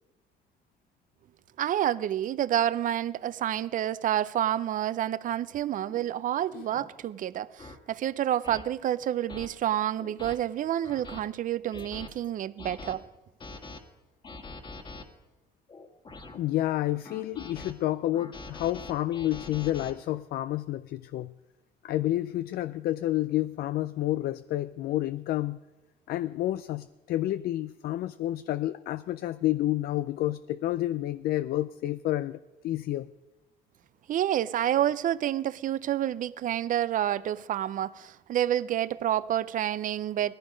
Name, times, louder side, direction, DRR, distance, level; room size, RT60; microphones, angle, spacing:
voice 1, 1.6-13.0 34.1-40.3, right 11 dB, 50° right, 0.5 m, -29 dB
sound 1, 5.9-6.1 6.7-6.9 7.6-7.8 8.4-8.6 9.3-9.5 10.0-10.4 10.8-11.2 11.7-12.1 12.6-13.0 13.4-13.8 14.2-15.0 15.7-16.4 17.0-17.7 18.1-19.9, left 3 dB, 30° left, 1.6 m, -43 dB
voice 2, 16.3-21.3 21.8-25.6 26.1-33.1, left 14 dB, 65° left, 0.4 m, -30 dB
18.0 x 14.5 x 5.1 m
cardioid pair, 110°, 17 cm